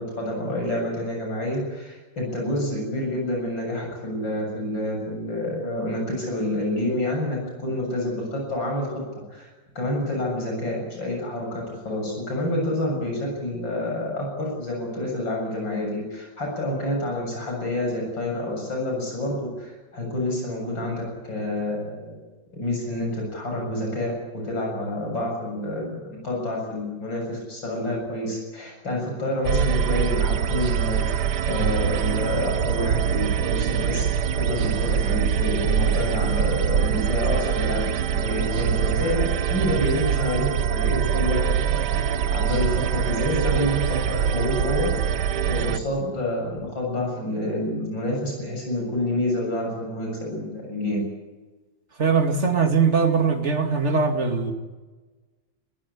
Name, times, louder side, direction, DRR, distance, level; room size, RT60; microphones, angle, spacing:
voice 1, 0.1-9.0 9.3-22.2 22.5-34.1 34.4-37.9 38.2-41.5 42.3-45.1 45.4-51.0, left 1 dB, 80° left, 0 dB, 8.0 m, -28 dB
sound 1, 29.4-45.8, right 8 dB, 65° right, 1.4 m, -24 dB
voice 2, 52.0-54.5, right 5 dB, 35° right, 5 dB, 2.7 m, -21 dB
21.5 x 17.5 x 9.9 m, 1.3 s
omnidirectional pair, 2.0 m